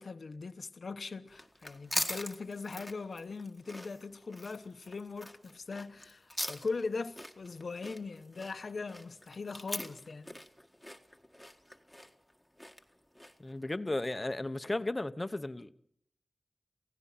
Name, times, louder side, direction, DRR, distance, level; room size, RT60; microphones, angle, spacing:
voice 1, 0.0-10.4, left 4 dB, 75° left, 0.9 m, -40 dB
sound 1, 1.3-13.5, left 1 dB, 5° left, 1.8 m, -42 dB
voice 2, 13.4-15.7, left 2 dB, 25° left, 1.0 m, -35 dB
28.0 x 16.5 x 5.8 m
wide cardioid pair, 80°, 0 cm